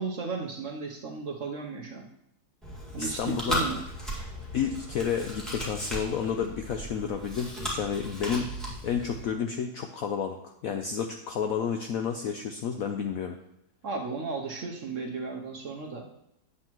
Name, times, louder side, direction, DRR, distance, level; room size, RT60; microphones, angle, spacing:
voice 1, 0.0-2.1 2.9-3.8 13.8-16.1, right 4 dB, 55° right, 2 dB, 0.9 m, -34 dB
Chewing mastication, 2.6-9.2, equal, ahead, 1.7 m, -36 dB
voice 2, 3.0-3.6 4.5-8.5 8.8-13.4, left 7 dB, 75° left, 5 dB, 0.8 m, -31 dB
8.6 x 7.6 x 3.0 m, 0.82 s
omnidirectional pair, 2.0 m